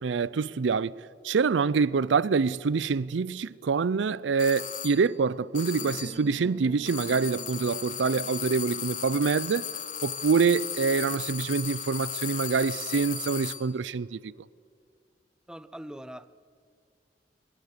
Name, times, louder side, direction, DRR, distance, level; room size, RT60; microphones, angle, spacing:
voice 1, 0.0-1.0 1.2-9.7 10.0-14.3, right 5 dB, 85° right, 0.5 m, -26 dB
sound 1, 4.4-5.1 5.5-6.3 6.9-13.7, left 9 dB, 45° left, 1.1 m, -36 dB
sound 2, 5.8-9.7, right 1 dB, 40° right, 2.9 m, -47 dB
voice 2, 15.5-16.3, equal, 5° right, 0.5 m, -41 dB
24.0 x 21.5 x 6.7 m
head